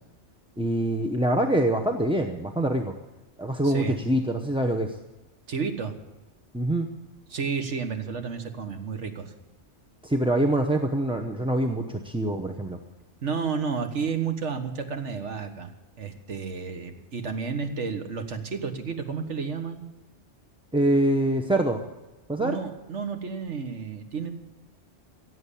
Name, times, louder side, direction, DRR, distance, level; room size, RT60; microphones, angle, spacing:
voice 1, 0.6-2.9 3.4-5.0 6.5-6.9 10.0-12.8 20.7-21.8 22.3-22.6, right 1 dB, 5° right, 2 dB, 0.6 m, -24 dB
voice 2, 3.6-4.0 5.5-6.0 7.3-9.3 13.2-15.7 16.0-19.8 22.4-24.3, right 5 dB, 80° right, 6 dB, 1.6 m, -31 dB
16.5 x 7.8 x 8.4 m, 1.1 s
omnidirectional pair, 1.2 m